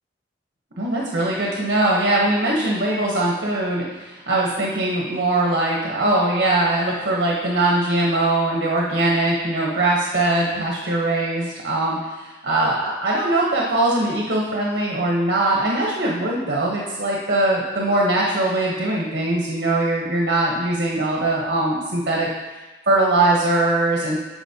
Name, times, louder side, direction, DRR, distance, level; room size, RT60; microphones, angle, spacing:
voice 1, 0.8-22.3 22.9-24.2, right 2 dB, 60° right, -3 dB, 0.9 m, -21 dB
9.9 x 5.1 x 2.8 m, 1.2 s
head